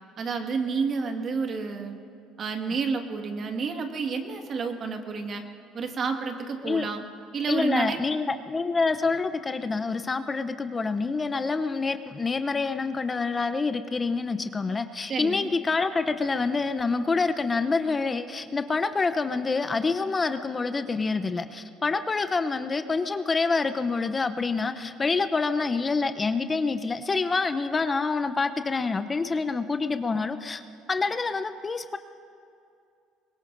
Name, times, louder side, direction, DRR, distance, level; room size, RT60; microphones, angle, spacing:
voice 1, 0.2-2.0 2.4-5.4 5.7-7.0 7.3-8.0 15.1-15.5, right 5 dB, 45° right, 5 dB, 1.7 m, -30 dB
voice 2, 7.5-30.6 30.9-32.0, left 4 dB, 25° left, 10 dB, 0.7 m, -27 dB
23.0 x 21.0 x 2.6 m, 2.5 s
supercardioid pair, 75°, 0 cm